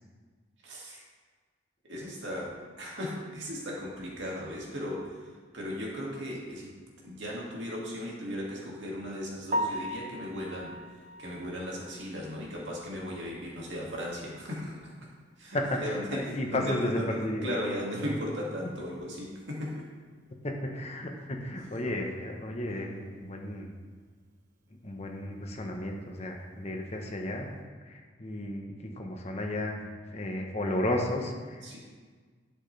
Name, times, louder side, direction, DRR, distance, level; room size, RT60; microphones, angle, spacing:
voice 1, 0.6-1.0 1.8-5.2 5.5-6.7 7.0-10.7 11.2-14.9 15.4-19.9 21.7-21.8 31.6-31.8, equal, 75° right, -3 dB, 2.2 m, -37 dB
Piano, 9.5-13.5 13.8-14.0 14.4-14.5 14.9-15.0 18.1-18.2 26.7-26.9, equal, 40° right, 0.8 m, -37 dB
voice 2, 15.5-17.5 18.0-18.2 18.6-18.7 20.4-23.7 24.8-27.5 27.9-29.8 30.1-31.7, left 1 dB, 35° left, 2 dB, 1.0 m, -33 dB
11.0 x 7.7 x 3.4 m, 1.5 s
head